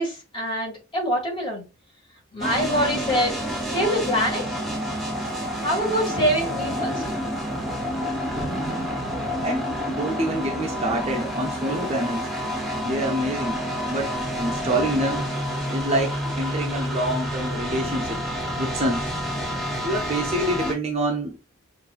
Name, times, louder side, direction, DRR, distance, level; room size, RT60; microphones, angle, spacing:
voice 1, 0.0-1.6 2.3-3.4 3.7-4.4 5.6-7.0, equal, 25° left, 1.8 m, -24 dB
sound 1, 2.4-20.7, equal, ahead, 1.0 m, -29 dB
voice 2, 9.4-12.3 12.8-13.6 13.9-15.3 15.7-18.2 18.6-19.1 19.8-21.6, right 1 dB, 30° right, 0.5 m, -27 dB
5.8 x 2.6 x 2.4 m
head